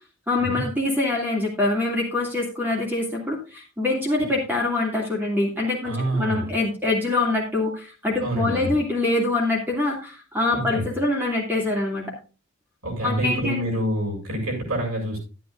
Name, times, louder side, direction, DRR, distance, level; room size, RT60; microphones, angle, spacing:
voice 1, 0.3-12.1 13.0-13.6, left 2 dB, 10° right, -2 dB, 2.7 m, -24 dB
voice 2, 5.8-6.5 8.2-8.8 10.5-10.9 12.8-15.2, right 1 dB, 85° right, -1 dB, 7.3 m, -27 dB
13.0 x 10.5 x 2.6 m, 0.33 s
head